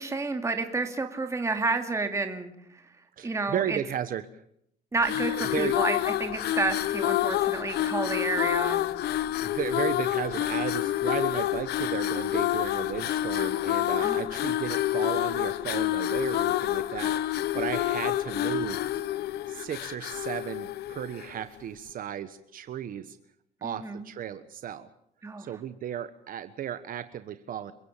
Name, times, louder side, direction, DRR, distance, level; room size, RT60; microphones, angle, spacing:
voice 1, 0.0-2.8 3.2-3.8 4.9-8.9 14.0-14.4 23.6-24.1 25.2-25.5, right 3 dB, 15° right, 5 dB, 2.5 m, -30 dB
voice 2, 3.2-4.4 5.3-5.8 9.4-18.8 19.5-23.2 23.6-24.9 25.4-27.7, right 10 dB, 55° right, 11 dB, 1.3 m, -34 dB
sound 1, 5.0-21.4, left 13 dB, 75° left, 1.0 m, -28 dB
30.0 x 16.5 x 7.4 m, 0.73 s
cardioid pair, 110°, 17 cm